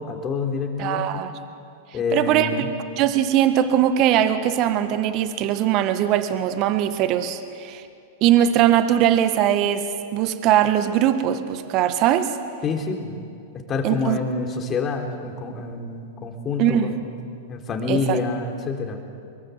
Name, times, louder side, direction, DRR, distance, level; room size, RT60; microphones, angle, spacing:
voice 1, 0.0-1.2 1.9-2.7 12.6-13.2 13.7-17.0 17.5-19.0, left 4 dB, 30° left, 3 dB, 4.0 m, -27 dB
voice 2, 0.8-1.3 2.1-2.5 3.0-7.8 8.2-9.9 10.1-12.3 13.8-14.2 16.6-16.9 17.9-18.2, right 11 dB, 45° right, 10 dB, 1.7 m, -20 dB
25.0 x 22.5 x 8.2 m, 2.4 s
hypercardioid pair, 100°, 0 cm